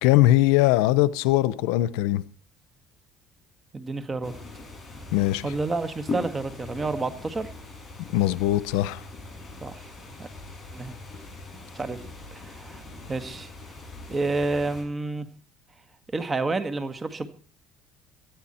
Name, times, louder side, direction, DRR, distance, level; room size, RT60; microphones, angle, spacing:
voice 1, 0.0-2.2 5.1-5.5 8.1-9.0, left 15 dB, 90° left, 0.8 m, -21 dB
voice 2, 3.7-4.3 5.4-7.5 9.6-9.8 10.2-10.3 10.7-10.9 11.8-12.0 12.3-12.8 13.1-13.5 14.1-15.3 16.1-17.3, right 3 dB, 25° right, 1.8 m, -29 dB
sound 1, 4.2-14.8, left 3 dB, 15° left, 7.4 m, -41 dB
19.0 x 13.5 x 4.4 m
cardioid pair, 110°, 0 cm